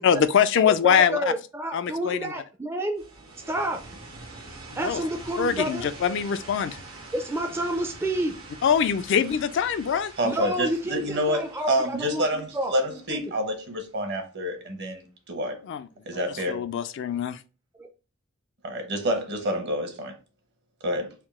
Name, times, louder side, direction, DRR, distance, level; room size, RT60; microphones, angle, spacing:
voice 1, 0.0-1.2 1.7-2.3 4.8-5.0 5.4-6.8 8.6-10.1 15.7-15.9 16.5-17.4, left 7 dB, 60° left, 0.3 m, -23 dB
voice 2, 0.7-3.0 3.5-3.8 4.7-5.9 7.1-8.3 10.2-13.2 17.8-17.9, right 1 dB, 10° right, 0.4 m, -29 dB
sound 1, 3.0-13.7, right 3 dB, 80° right, 1.1 m, -45 dB
voice 3, 10.2-15.6 16.1-16.6 18.6-20.1 20.8-21.1, equal, 55° right, 1.0 m, -28 dB
3.6 x 2.6 x 3.5 m
head